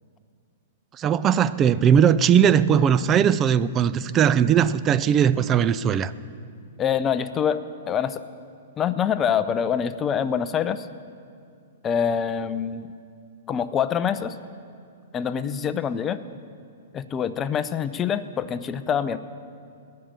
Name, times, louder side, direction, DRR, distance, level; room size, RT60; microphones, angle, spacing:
voice 1, 1.0-6.1, right 8 dB, 25° right, 15 dB, 0.4 m, -19 dB
voice 2, 6.8-8.2 8.8-10.9 11.8-12.9 13.5-14.4 15.1-16.2 16.9-19.2, left 8 dB, 25° left, 12 dB, 0.6 m, -25 dB
19.0 x 6.6 x 9.0 m, 2.4 s
hypercardioid pair, 125°, 0 cm